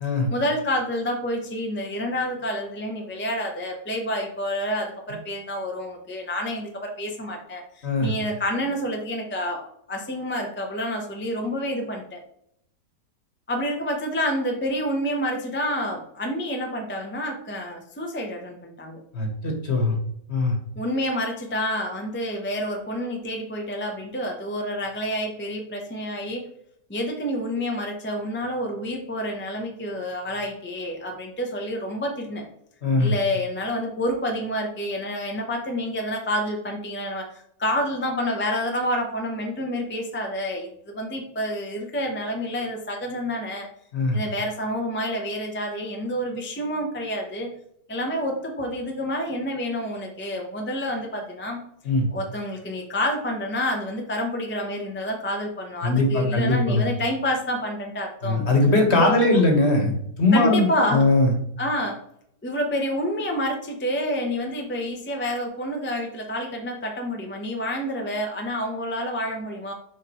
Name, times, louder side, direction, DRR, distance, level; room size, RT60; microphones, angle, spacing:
voice 1, 0.3-12.2 13.5-19.0 20.8-26.4 26.9-32.5 33.0-43.7 44.1-47.5 47.9-51.6 52.1-58.4 58.9-59.4 60.3-61.1 61.6-62.0 62.4-69.7, equal, 10° left, 2 dB, 0.5 m, -28 dB
voice 2, 19.1-19.9 20.3-20.5 32.8-33.1 43.9-44.2 51.8-52.1 55.8-56.8 58.2-61.3, left 2 dB, 40° left, 2 dB, 1.5 m, -20 dB
6.6 x 4.8 x 3.0 m, 0.74 s
omnidirectional pair, 1.8 m